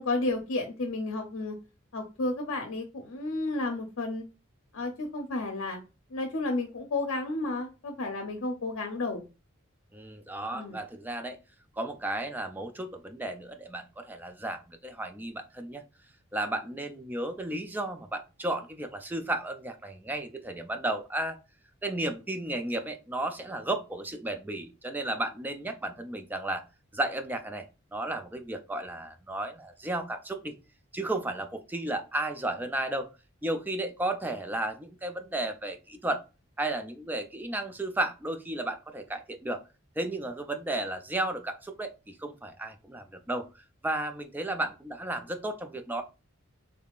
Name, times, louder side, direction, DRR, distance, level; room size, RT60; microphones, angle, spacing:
voice 1, 0.0-1.6 1.9-4.2 4.7-5.8 6.1-9.3 10.5-10.8, left 2 dB, 80° left, 3 dB, 0.6 m, -32 dB
voice 2, 9.9-11.4 11.8-15.8 16.3-21.4 21.8-26.6 26.9-27.7 27.9-30.6 30.9-33.1 33.4-36.2 36.6-39.6 40.0-43.5 43.8-46.0, right 1 dB, 10° right, 6 dB, 0.3 m, -33 dB
3.5 x 3.2 x 2.4 m, 0.30 s
head